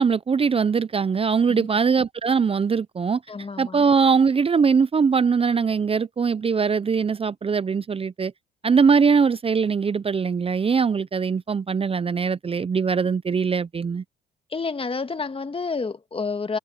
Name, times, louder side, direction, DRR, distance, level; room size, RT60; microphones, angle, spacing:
voice 1, 0.0-3.2 3.6-8.3 8.6-14.0, right 5 dB, 30° right, 0.7 m, -21 dB
voice 2, 3.3-3.8 14.5-16.6, left 4 dB, 30° left, 1.8 m, -29 dB
supercardioid pair, 60°, 19 cm